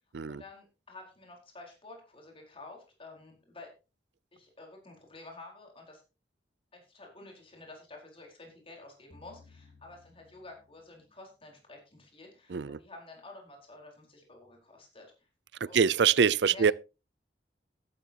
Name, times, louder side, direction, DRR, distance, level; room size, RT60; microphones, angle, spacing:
voice 1, 0.3-3.7 4.3-6.0 6.7-15.1 15.6-15.9 16.5-16.7, left 2 dB, 30° left, 4.6 m, -50 dB
sound 1, 9.1-11.3, left 3 dB, 60° left, 2.9 m, -59 dB
voice 2, 15.7-16.7, right 6 dB, 70° right, 0.5 m, -24 dB
14.0 x 12.0 x 2.9 m
head